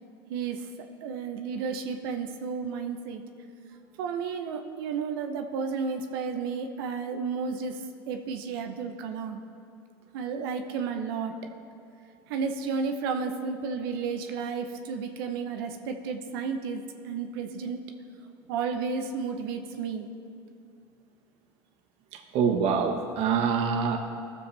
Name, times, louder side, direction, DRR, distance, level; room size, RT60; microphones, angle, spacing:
voice 1, 0.3-0.6 1.0-3.2 4.0-7.8 8.1-9.4 10.1-11.3 12.3-17.8 18.5-20.1, right 5 dB, 75° right, 5 dB, 0.9 m, -32 dB
voice 2, 22.1-24.0, right 6 dB, 60° right, 3 dB, 1.4 m, -25 dB
17.5 x 7.1 x 3.3 m, 2.5 s
hypercardioid pair, 90°, 12 cm